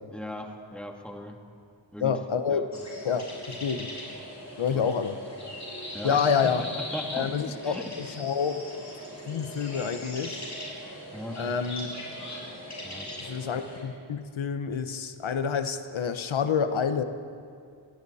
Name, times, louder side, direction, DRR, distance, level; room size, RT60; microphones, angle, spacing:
voice 1, 0.1-1.4 1.9-2.2 2.5-2.6 4.7-5.0 5.9-6.3 6.8-8.2 11.1-11.5 12.8-13.2, left 1 dB, ahead, 1 dB, 2.2 m, -39 dB
voice 2, 2.0-2.7 3.0-3.9 4.6-5.2 6.0-6.6 7.1-8.6 9.3-10.4 11.4-12.0 13.2-17.0, left 6 dB, 90° left, 9 dB, 1.1 m, -28 dB
sound 1, 2.7-13.8, left 1 dB, 35° left, 7.4 m, -40 dB
28.5 x 21.5 x 4.3 m, 2.3 s
wide cardioid pair, 120°, 46 cm